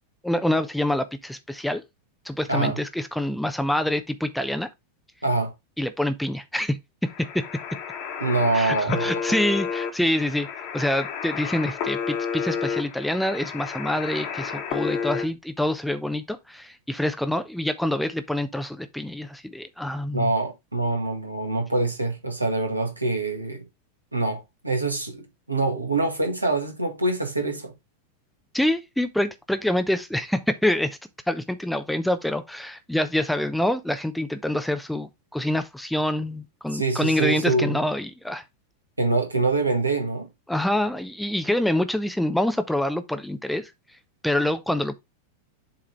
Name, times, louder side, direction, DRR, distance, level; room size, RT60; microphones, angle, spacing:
voice 1, 0.2-1.8 2.3-4.7 5.8-7.5 8.5-10.5 10.7-20.3 28.5-31.0 31.3-38.4 40.5-43.7 44.2-44.9, left 1 dB, ahead, 0.7 m, -26 dB
sound 1, 7.0-15.2, left 6 dB, 45° left, 1.6 m, -31 dB
voice 2, 8.2-9.1 20.1-23.7 24.1-27.7 36.7-37.8 39.0-40.3, right 2 dB, 80° right, 1.8 m, -25 dB
7.4 x 3.7 x 4.4 m
figure-of-eight pair, 90°, 0 cm